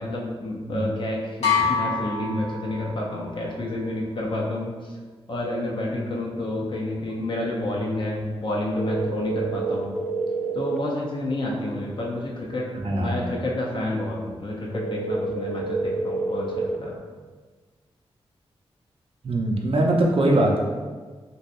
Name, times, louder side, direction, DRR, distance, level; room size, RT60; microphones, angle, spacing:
voice 1, 0.0-5.0 5.3-10.0 10.5-17.0, left 1 dB, 50° left, -3 dB, 0.6 m, -29 dB
sound 1, 1.4-3.2, left 5 dB, 90° left, 0.9 m, -25 dB
sound 2, 8.8-10.8 14.7-16.8, right 3 dB, 5° left, 0.4 m, -28 dB
voice 2, 12.8-13.2 19.2-20.6, right 1 dB, 60° right, -1 dB, 0.6 m, -21 dB
3.0 x 2.7 x 2.6 m, 1.4 s
cardioid pair, 75°, 11 cm